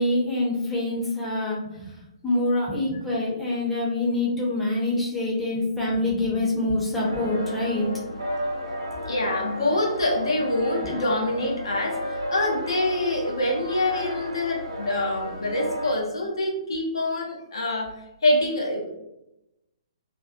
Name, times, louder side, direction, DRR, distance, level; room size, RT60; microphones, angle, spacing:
voice 1, 0.0-1.9 2.2-7.9, left 2 dB, 5° left, -6 dB, 0.6 m, -25 dB
sound 1, 7.0-16.0, equal, 75° right, 0.8 m, -33 dB
voice 2, 8.9-17.9 18.2-19.0, left 1 dB, 60° left, 0 dB, 0.6 m, -25 dB
2.5 x 2.3 x 2.4 m, 0.89 s
figure-of-eight pair, 125°, 3 cm